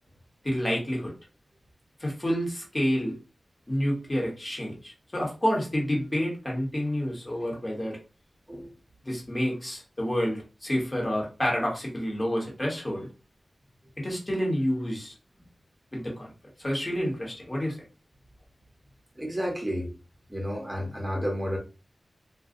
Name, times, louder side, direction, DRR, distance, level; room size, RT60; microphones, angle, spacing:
voice 1, 0.4-1.1 2.0-3.2 3.7-8.0 9.0-13.1 14.0-15.1 15.9-16.3 16.6-17.8, equal, 25° left, -2 dB, 1.3 m, -29 dB
voice 2, 19.2-19.9 20.3-21.6, equal, 15° right, 0 dB, 1.0 m, -31 dB
2.4 x 2.3 x 3.8 m, 0.32 s
wide cardioid pair, 85°, 0 cm